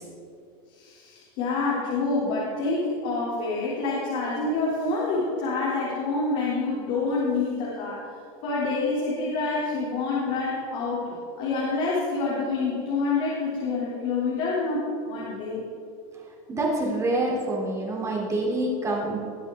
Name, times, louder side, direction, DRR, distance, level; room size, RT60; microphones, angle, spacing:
voice 1, 0.7-8.1 8.4-15.6, left 3 dB, 50° left, -7 dB, 3.4 m, -27 dB
voice 2, 16.5-19.2, right 1 dB, 15° right, -2 dB, 3.4 m, -26 dB
20.0 x 8.2 x 3.8 m, 2.6 s
supercardioid pair, 140°, 18 cm